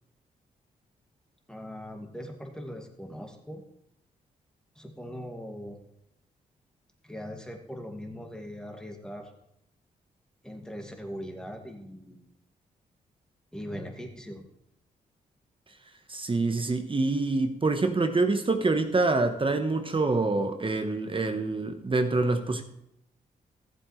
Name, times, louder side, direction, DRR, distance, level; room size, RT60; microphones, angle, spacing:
voice 1, 1.5-3.6 4.8-5.8 7.0-9.3 10.4-12.3 13.5-14.4, equal, 5° left, 2 dB, 2.2 m, -40 dB
voice 2, 16.1-22.6, right 3 dB, 30° right, 6 dB, 1.2 m, -26 dB
14.5 x 7.6 x 3.3 m, 0.81 s
supercardioid pair, 50°, 16 cm